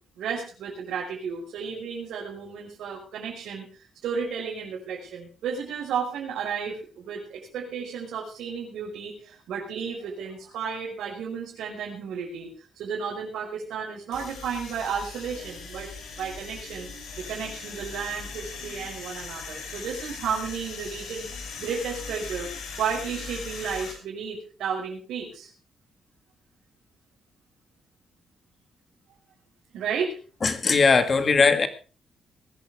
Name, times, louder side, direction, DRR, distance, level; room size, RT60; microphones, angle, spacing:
voice 1, 0.2-12.5 12.8-15.9 16.2-21.3 21.6-22.5 22.8-25.5 29.7-30.2, right 6 dB, 85° right, -4 dB, 5.2 m, -33 dB
sound 1, 14.1-23.9, left 5 dB, 80° left, 6.5 m, -39 dB
voice 2, 30.4-31.7, left 4 dB, 30° left, 9 dB, 1.9 m, -19 dB
20.5 x 14.5 x 3.6 m, 0.37 s
cardioid pair, 165°, 0 cm